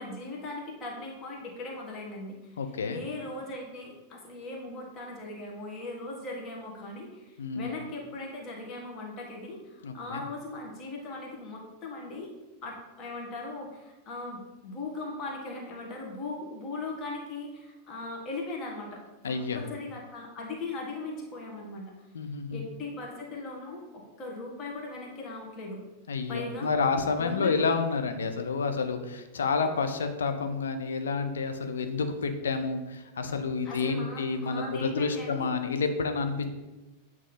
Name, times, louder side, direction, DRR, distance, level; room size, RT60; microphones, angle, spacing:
voice 1, 0.0-2.5 2.9-12.3 12.6-21.9 22.5-25.8 26.3-26.7 27.2-27.7 33.6-35.5, left 2 dB, 30° left, -1 dB, 1.5 m, -39 dB
voice 2, 2.6-3.0 7.4-7.7 9.8-10.2 19.2-19.6 22.1-22.6 26.1-36.5, left 4 dB, 65° left, 7 dB, 0.6 m, -29 dB
8.1 x 3.1 x 3.9 m, 1.0 s
figure-of-eight pair, 90°, 0 cm